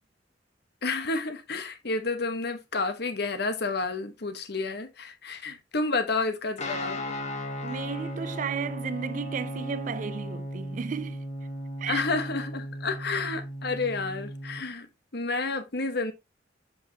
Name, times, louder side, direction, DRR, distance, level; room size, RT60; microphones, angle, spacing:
voice 1, 0.8-7.0 11.9-14.9 15.1-16.1, left 3 dB, 60° left, 1.2 m, -30 dB
Guitar, 6.6-14.6, equal, 40° left, 1.2 m, -36 dB
voice 2, 7.6-11.2 11.8-12.0, right 6 dB, 45° right, 0.4 m, -34 dB
7.2 x 5.8 x 2.8 m
head